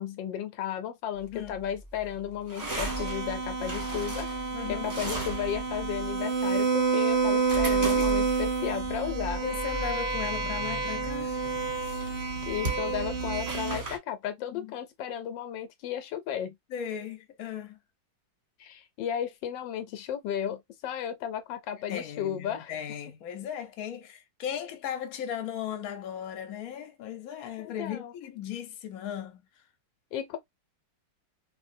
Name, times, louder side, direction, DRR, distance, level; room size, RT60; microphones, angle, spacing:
voice 1, 0.0-9.4 12.2-16.6 18.6-22.7 27.6-28.1 30.1-30.4, left 9 dB, 80° left, 1.3 m, -34 dB
sound 1, 1.2-14.0, right 2 dB, 25° right, 1.0 m, -37 dB
sound 2, 2.9-13.8, right 5 dB, 75° right, 0.5 m, -29 dB
voice 2, 4.5-4.9 7.6-8.1 9.4-11.4 14.5-14.7 16.7-17.8 21.9-29.5, left 9 dB, 60° left, 1.1 m, -37 dB
3.1 x 2.6 x 2.6 m
omnidirectional pair, 2.0 m